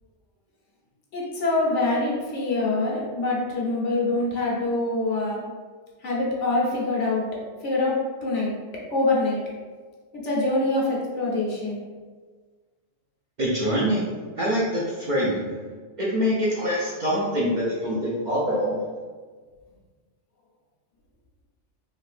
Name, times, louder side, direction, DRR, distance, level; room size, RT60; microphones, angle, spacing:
voice 1, 1.1-5.4 6.0-7.2 7.6-8.0 8.2-8.5 8.9-9.4 10.1-11.8, left 2 dB, 80° left, -4 dB, 1.1 m, -24 dB
voice 2, 13.4-15.7 16.0-18.9, equal, 50° right, -6 dB, 0.6 m, -25 dB
3.2 x 2.7 x 2.4 m, 1.5 s
omnidirectional pair, 1.2 m